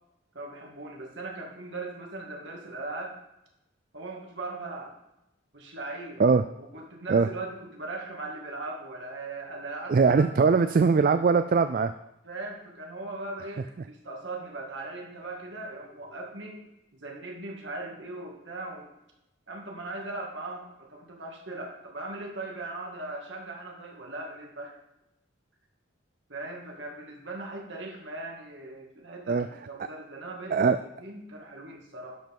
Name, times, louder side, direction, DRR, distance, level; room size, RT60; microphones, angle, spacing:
voice 1, 0.3-3.2 3.9-4.9 5.5-6.2 6.6-10.6 12.2-18.9 19.5-24.8 26.3-32.1, right 2 dB, 65° right, 0 dB, 2.2 m, -39 dB
voice 2, 9.9-11.9 29.3-29.5 30.5-30.8, right 5 dB, 45° right, 10 dB, 0.3 m, -21 dB
12.0 x 5.2 x 5.4 m, 0.90 s
head